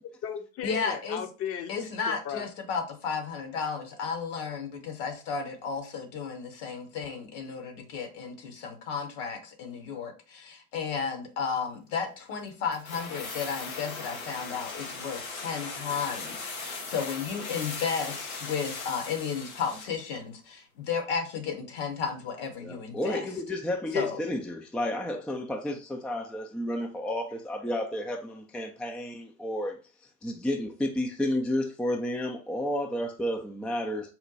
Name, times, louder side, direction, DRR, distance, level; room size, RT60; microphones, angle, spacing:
voice 1, 0.0-1.8 2.1-2.5, left 8 dB, 35° left, 0.7 m, -36 dB
voice 2, 0.6-1.2 1.7-23.3 23.9-24.2, left 6 dB, 60° left, 1.1 m, -33 dB
sound 1, 12.7-20.0 20.3-20.4, left 4 dB, 90° left, 0.8 m, -38 dB
voice 3, 22.6-29.8 30.2-34.1, left 1 dB, 5° left, 0.4 m, -31 dB
4.3 x 2.2 x 3.9 m
figure-of-eight pair, 70°, 40 cm